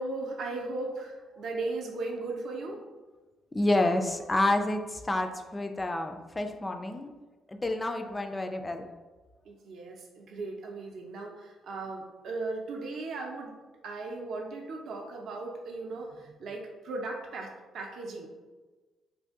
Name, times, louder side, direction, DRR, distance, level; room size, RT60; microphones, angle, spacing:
voice 1, 0.0-2.8 9.5-13.5 13.8-18.3, right 2 dB, 65° right, 1 dB, 0.5 m, -37 dB
voice 2, 3.5-7.1 7.5-8.9, left 1 dB, 20° left, 5 dB, 0.3 m, -29 dB
2.6 x 2.6 x 3.5 m, 1.2 s
cardioid pair, 90°, 0 cm